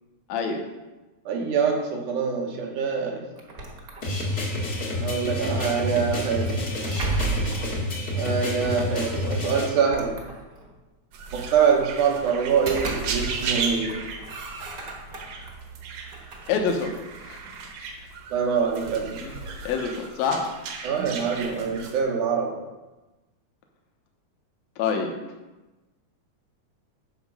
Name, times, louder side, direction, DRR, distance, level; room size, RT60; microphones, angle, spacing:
voice 1, 0.3-0.6 16.5-17.0 17.2-17.4 19.2-19.4 19.6-20.5 24.8-25.1, left 5 dB, 70° left, 2 dB, 2.2 m, -26 dB
voice 2, 1.3-3.2 5.0-6.6 8.2-10.2 11.3-14.0 18.3-19.2 20.8-22.5, right 6 dB, 85° right, 1 dB, 2.8 m, -24 dB
sound 1, 3.4-4.5 6.5-7.8 9.0-9.1 9.7-10.8 12.4-13.6 13.9-15.5 16.0-17.6, right 4 dB, 45° right, 1.2 m, -34 dB
sound 2, 4.0-9.7, left 1 dB, 40° left, 0.9 m, -28 dB
sound 3, 11.1-22.0, right 5 dB, 65° right, 2.1 m, -36 dB
9.3 x 6.2 x 4.9 m, 1.1 s
omnidirectional pair, 3.4 m